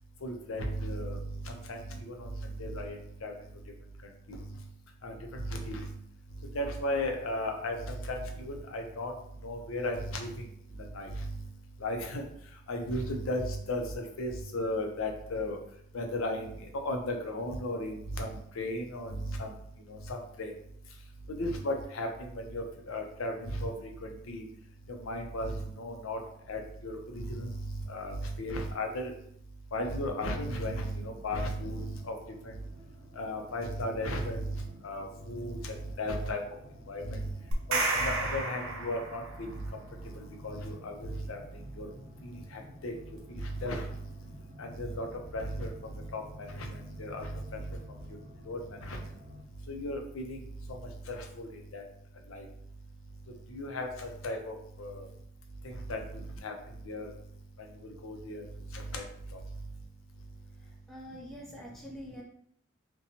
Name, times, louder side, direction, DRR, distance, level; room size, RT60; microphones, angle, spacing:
voice 1, 0.2-2.3 2.6-3.3 4.3-4.4 5.0-5.9 6.5-7.8 8.1-9.1 9.4-10.3 10.9-11.3 11.8-12.2 12.7-15.6 15.9-16.5 16.8-18.3 18.6-19.5 19.9-20.5 21.3-23.9 24.3-24.4 25.0-26.2 26.5-29.1 29.7-32.1 33.2-36.4 36.9-37.3 37.7-39.2 40.4-41.4 41.8-41.9 42.2-42.3 42.8-42.9 43.4-43.9 44.6-45.1 45.3-45.7 46.1-46.2 46.5-47.6 48.5-49.0 49.7-50.4 51.1-51.8 52.3-52.4 53.5-55.1 55.9-56.0 56.4-56.5 56.9-57.1 58.0-58.4 58.7-59.0, left 1 dB, 85° left, 2 dB, 0.5 m, -35 dB
sound 1, 31.0-49.4, left 1 dB, 30° right, 0.7 m, -52 dB
sound 2, 37.5-39.5, right 2 dB, 85° right, 0.5 m, -31 dB
voice 2, 60.9-62.2, equal, ahead, -3 dB, 0.5 m, -45 dB
2.8 x 2.2 x 2.7 m, 0.68 s
head